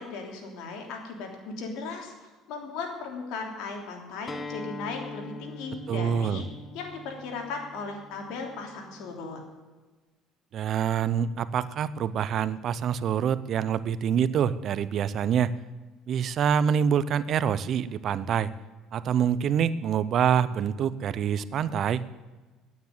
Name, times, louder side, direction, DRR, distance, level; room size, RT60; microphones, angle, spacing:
voice 1, 0.0-2.1 2.5-6.4 6.7-9.4, left 4 dB, 75° left, 2 dB, 3.1 m, -37 dB
Acoustic guitar, 4.3-9.5, left 2 dB, 25° left, 1.4 m, -43 dB
voice 2, 5.9-6.4 10.5-15.6 16.1-18.5 18.9-22.0, right 8 dB, 50° right, 17 dB, 0.6 m, -26 dB
9.5 x 9.4 x 9.4 m, 1.3 s
supercardioid pair, 105°, 0 cm